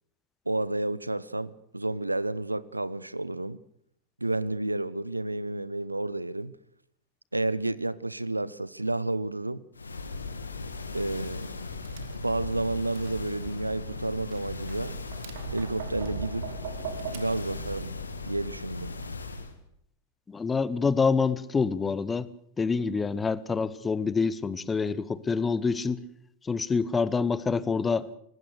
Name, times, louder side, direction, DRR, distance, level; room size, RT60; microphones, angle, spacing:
voice 1, 0.5-3.6 4.2-6.6 7.3-9.6 10.9-11.5 12.1-14.9 15.5-16.5 17.1-18.0 18.2-18.9, right 2 dB, 85° right, 0.8 m, -31 dB
sound 1, 9.8-19.5, left 3 dB, 75° left, 2.4 m, -38 dB
Tap, 11.6-17.9, right 8 dB, 55° right, 2.4 m, -41 dB
voice 2, 20.3-22.3 22.6-26.0 26.4-28.1, left 5 dB, 15° left, 1.1 m, -26 dB
24.5 x 19.0 x 6.5 m
figure-of-eight pair, 90°, 0 cm